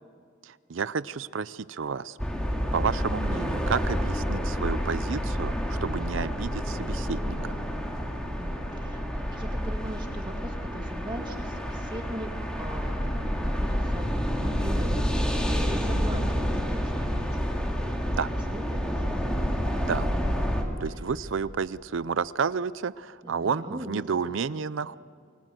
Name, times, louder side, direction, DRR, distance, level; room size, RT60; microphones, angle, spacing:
voice 1, 0.4-2.2 2.7-7.5 18.1-18.3 19.8-20.1 20.8-25.0, right 5 dB, 70° right, 17 dB, 0.5 m, -31 dB
sound 1, 2.2-20.6, equal, 5° left, 2.5 m, -29 dB
voice 2, 8.4-19.4 20.1-20.6 20.9-21.0 23.2-24.4, right 1 dB, 25° right, 2 dB, 2.2 m, -41 dB
29.0 x 20.5 x 7.7 m, 2.3 s
head